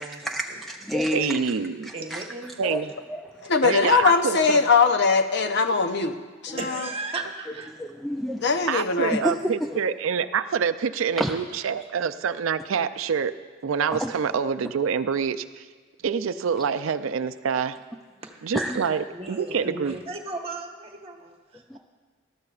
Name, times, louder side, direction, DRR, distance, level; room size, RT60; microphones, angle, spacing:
voice 1, 0.0-1.6 1.8-2.3 2.6-2.8 3.1-3.3 6.5-6.6 7.8-8.4 9.2-9.8 11.2-11.3 14.0-14.1 18.5-18.9 21.7-21.8, equal, ahead, 2 dB, 0.4 m, -29 dB
voice 2, 1.1-1.9 2.6-2.9 3.6-4.6 8.7-13.3 13.6-15.7 16.0-17.8 18.4-20.0, right 6 dB, 80° right, 12 dB, 0.4 m, -26 dB
voice 3, 1.9-2.5 6.6-7.7 18.2-18.5 19.1-21.8, right 3 dB, 30° right, 2 dB, 1.2 m, -36 dB
voice 4, 3.4-6.9 8.4-9.3, left 5 dB, 60° left, 7 dB, 0.7 m, -21 dB
19.5 x 13.0 x 2.4 m, 1.5 s
head